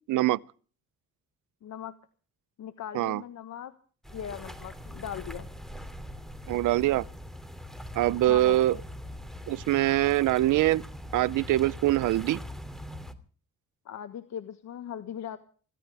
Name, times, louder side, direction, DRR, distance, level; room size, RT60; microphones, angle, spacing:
voice 1, 0.1-0.4 2.9-3.2 6.5-7.1 7.9-8.8 9.5-10.8 11.1-12.4, right 15 dB, 80° right, 0.7 m, -24 dB
voice 2, 1.6-2.0 2.6-3.7 4.1-5.5 8.3-8.8 13.8-15.4, left 9 dB, 65° left, 1.4 m, -39 dB
sound 1, 4.0-13.1, equal, ahead, 2.7 m, -42 dB
25.5 x 16.0 x 3.5 m
cardioid pair, 90°, 30 cm